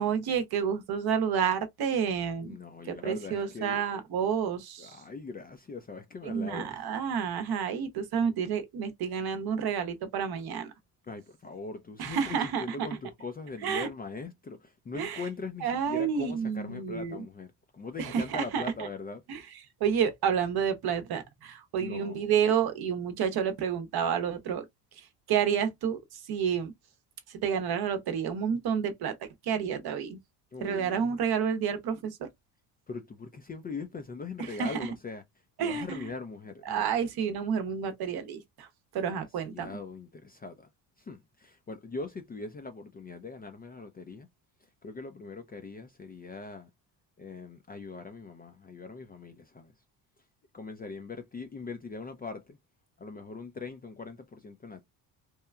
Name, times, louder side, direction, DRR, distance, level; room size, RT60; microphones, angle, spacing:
voice 1, 0.0-2.6 2.8-5.0 6.2-10.7 12.0-12.9 13.6-13.9 14.9-15.2 15.6-17.2 18.0-18.9 19.3-19.4 19.8-24.7 25.3-26.7 27.3-29.1 29.5-30.2 30.6-32.3 34.4-34.8 35.6-36.1 36.7-38.7 38.9-39.8, right 7 dB, 55° right, 0.8 m, -30 dB
voice 2, 2.4-3.8 4.8-6.8 11.0-19.2 21.8-22.3 30.5-31.1 32.9-35.2 35.6-36.9 39.1-39.2 39.5-40.7 41.0-44.3 44.8-46.7 47.2-49.7 50.5-52.6 53.0-54.8, left 4 dB, 20° left, 0.4 m, -41 dB
3.0 x 2.3 x 2.2 m
supercardioid pair, 70°, 47 cm